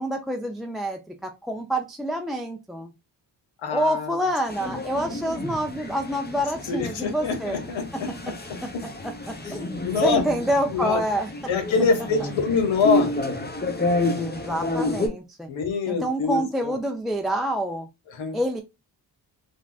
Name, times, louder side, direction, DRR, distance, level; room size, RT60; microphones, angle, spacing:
voice 1, 0.0-2.9 3.7-7.6 7.9-8.0 9.5-11.3 14.2-15.5 15.9-17.9 18.3-18.6, equal, ahead, 0.4 m, -27 dB
voice 2, 3.6-4.2 4.7-4.8 6.7-8.1 9.4-9.6 9.8-10.2 10.7-11.0 11.5-13.1 15.5-16.7 18.1-18.4, left 5 dB, 75° left, 1.0 m, -25 dB
sound 1, 4.5-15.1, left 2 dB, 20° left, 0.9 m, -30 dB
3.5 x 2.3 x 2.3 m
cardioid pair, 50°, 46 cm